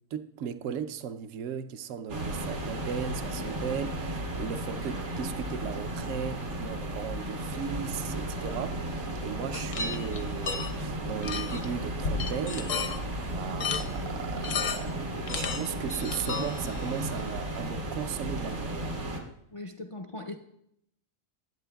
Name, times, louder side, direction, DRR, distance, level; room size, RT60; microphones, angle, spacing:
voice 1, 0.1-12.8 13.2-19.0, right 7 dB, 70° right, 1.0 m, -36 dB
sound 1, 2.1-19.2, right 1 dB, 85° right, 2.2 m, -34 dB
sound 2, 9.5-10.7 11.2-11.7 12.0-13.0 13.6-13.9 14.4-15.0 15.3-17.0, left 6 dB, 75° left, 1.2 m, -33 dB
voice 2, 19.5-20.3, left 2 dB, 50° left, 0.3 m, -40 dB
20.0 x 8.2 x 2.3 m
omnidirectional pair, 1.4 m